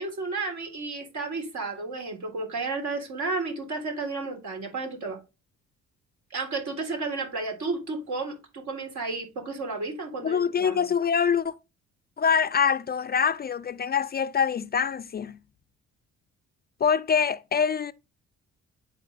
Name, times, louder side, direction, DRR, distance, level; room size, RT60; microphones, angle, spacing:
voice 1, 0.0-5.2 6.3-10.9, right 3 dB, 70° right, 3.7 m, -32 dB
voice 2, 10.2-11.5 12.2-15.4 16.8-17.9, left 7 dB, 35° left, 0.4 m, -24 dB
9.8 x 4.2 x 4.0 m
cardioid pair, 90°, 30 cm